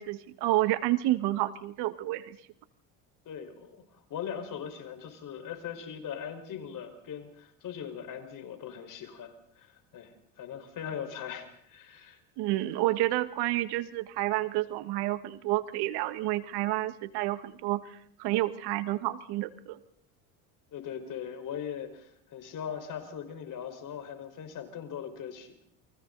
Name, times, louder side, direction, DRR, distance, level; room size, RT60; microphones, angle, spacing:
voice 1, 0.0-2.4 12.4-19.8, right 16 dB, 70° right, 12 dB, 1.6 m, -29 dB
voice 2, 3.2-12.2 20.7-25.6, left 8 dB, 50° left, 6 dB, 4.9 m, -40 dB
29.5 x 23.5 x 4.0 m, 0.69 s
supercardioid pair, 110°, 41 cm